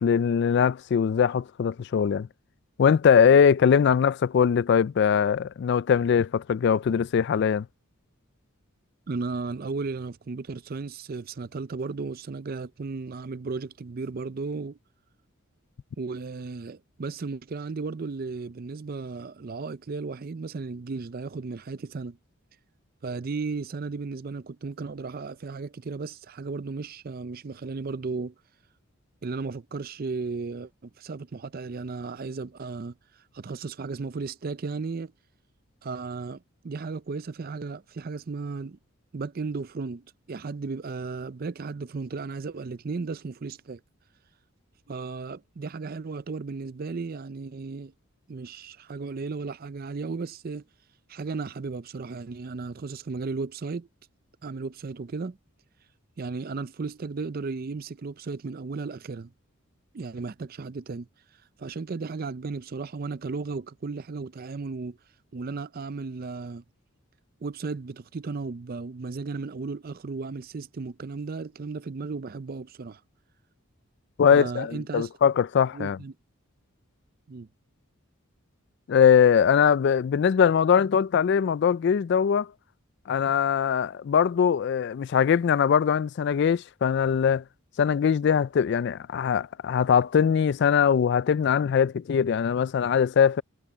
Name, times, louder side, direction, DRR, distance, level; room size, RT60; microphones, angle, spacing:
voice 1, 0.0-2.3 2.8-7.7 74.2-76.0 78.9-82.5 83.1-87.4 87.8-93.4, left 7 dB, 55° left, 0.3 m, -21 dB
voice 2, 9.1-14.8 16.0-22.2 23.0-28.3 29.2-32.9 33.3-35.1 35.8-38.8 39.1-43.8 44.9-47.9 48.3-50.6 51.1-53.9 54.4-55.4 56.2-59.3 59.9-61.1 61.6-65.0 65.3-66.6 67.4-73.0 74.3-75.1 75.7-76.1 77.3-77.5, right 4 dB, 45° right, 0.5 m, -35 dB
head